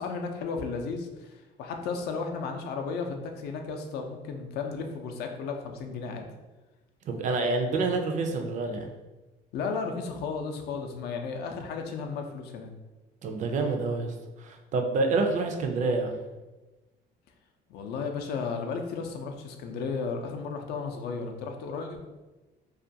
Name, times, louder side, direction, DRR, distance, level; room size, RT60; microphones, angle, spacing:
voice 1, 0.0-6.2 9.5-12.7 17.7-22.1, left 5 dB, 75° left, 4 dB, 0.4 m, -34 dB
voice 2, 7.1-8.9 13.2-16.2, right 3 dB, 45° right, 4 dB, 0.4 m, -28 dB
2.4 x 2.2 x 2.6 m, 1.1 s
cardioid pair, 110°, 17 cm